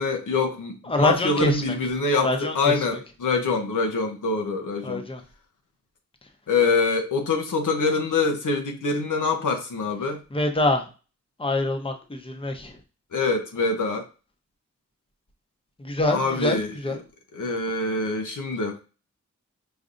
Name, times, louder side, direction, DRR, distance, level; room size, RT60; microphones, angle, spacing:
voice 1, 0.0-5.0 6.5-10.2 13.1-14.0 16.1-17.0 17.3-18.8, left 3 dB, 90° left, 3 dB, 0.8 m, -25 dB
voice 2, 0.9-1.6 2.2-2.5 4.8-5.2 10.3-10.8 11.4-12.7 15.8-17.0, left 2 dB, 20° left, 4 dB, 0.8 m, -25 dB
5.0 x 2.7 x 2.5 m, 0.33 s
wide cardioid pair, 65°, 30 cm